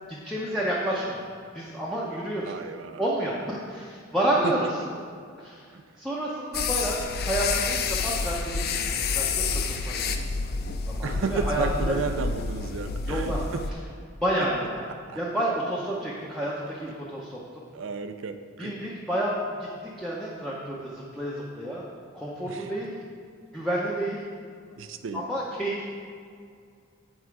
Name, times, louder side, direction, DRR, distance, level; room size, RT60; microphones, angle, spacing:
voice 1, 0.1-1.2 1.5-2.5 3.0-4.7 5.4-5.6 6.0-10.3 10.9-12.0 13.0-13.4 14.2-14.8 15.2-17.4 18.6-21.9 22.1-23.0 23.5-24.2 25.1-25.9, right 1 dB, ahead, -7 dB, 0.7 m, -30 dB
voice 2, 2.4-3.1 4.4-4.5 5.7-5.8 11.0-13.6 15.1-15.2 17.7-18.7 22.5-22.7 24.8-25.2, right 4 dB, 65° right, 9 dB, 0.4 m, -33 dB
sound 1, 6.5-13.7, left 4 dB, 45° left, 0.4 m, -29 dB
7.9 x 4.8 x 4.7 m, 2.2 s
head